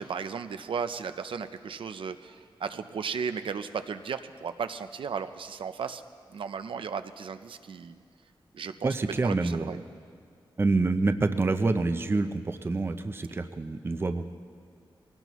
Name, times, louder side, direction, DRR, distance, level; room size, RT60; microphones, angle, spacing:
voice 1, 0.0-6.0 6.3-8.0 8.5-9.0 9.2-9.8, right 6 dB, 75° right, 9 dB, 0.5 m, -35 dB
voice 2, 8.8-9.8 10.6-14.3, right 3 dB, 25° right, 8 dB, 0.5 m, -27 dB
23.0 x 17.5 x 3.1 m, 2.1 s
wide cardioid pair, 145°, 9 cm